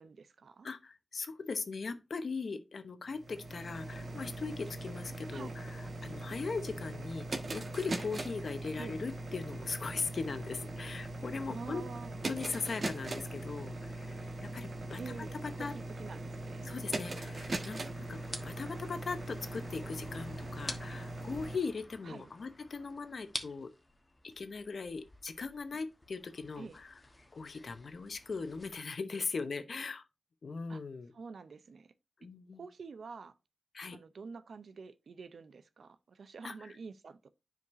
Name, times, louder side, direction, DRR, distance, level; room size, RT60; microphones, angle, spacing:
voice 1, 0.0-0.7 5.3-5.5 8.8-9.0 11.5-12.2 15.0-16.7 22.0-22.3 26.6-26.8 30.7-30.8 31.1-31.9 32.6-33.3 33.9-37.3, right 4 dB, 90° right, 0.6 m, -47 dB
voice 2, 0.6-7.2 7.5-11.8 12.3-15.1 15.4-15.7 16.6-23.7 24.2-26.9 27.3-30.0 30.4-31.1 32.2-32.6 33.7-34.0 36.4-36.8, left 4 dB, 75° left, 0.9 m, -39 dB
sound 1, 3.1-21.6, right 2 dB, 60° right, 1.3 m, -41 dB
sound 2, 17.3-28.7, left 2 dB, 30° left, 1.3 m, -49 dB
9.7 x 5.2 x 2.6 m
wide cardioid pair, 80°, 0 cm